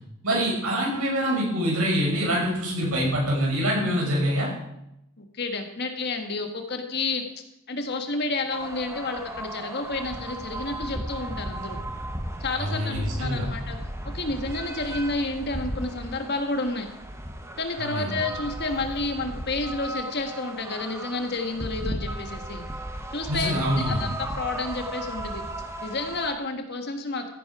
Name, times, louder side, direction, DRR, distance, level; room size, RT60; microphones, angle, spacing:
voice 1, 0.2-4.5 12.6-13.5 17.8-18.1 23.3-24.0, equal, 90° right, -3 dB, 6.2 m, -25 dB
voice 2, 5.2-7.2 7.7-11.8 12.4-13.8 14.1-16.9 17.6-22.6 23.1-25.4 25.8-27.3, left 2 dB, 50° left, 5 dB, 1.6 m, -30 dB
sound 1, 8.5-26.3, right 1 dB, 15° right, 0.9 m, -35 dB
15.0 x 9.9 x 4.8 m, 0.84 s
head